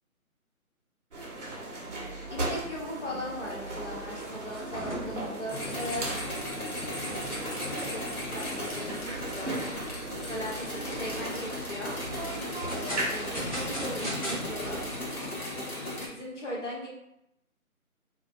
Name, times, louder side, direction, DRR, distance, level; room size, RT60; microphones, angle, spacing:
sound 1, 1.1-15.3, right 2 dB, 55° right, 0.7 m, -38 dB
voice 1, 2.3-6.2 7.0-9.6 10.2-12.0 12.5-14.8 16.1-16.9, left 1 dB, 55° left, -4 dB, 1.0 m, -39 dB
sound 2, 4.3-8.0 8.4-8.5 9.0-9.1 9.5-10.0 10.5-11.2 12.2-14.4, equal, 25° left, 0.7 m, -39 dB
sound 3, 5.5-16.1, left 1 dB, 80° left, 1.1 m, -37 dB
2.4 x 2.3 x 2.5 m, 0.79 s
figure-of-eight pair, 155°, 44 cm